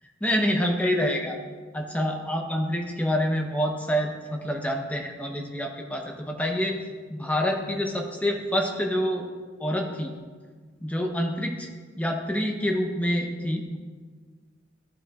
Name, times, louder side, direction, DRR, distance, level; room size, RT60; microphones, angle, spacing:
voice 1, 0.2-1.4 1.7-6.8 7.1-9.2 9.6-10.1 10.8-11.7 12.0-13.8, equal, 10° left, 2 dB, 0.7 m, -27 dB
12.5 x 6.3 x 2.3 m, 1.5 s
head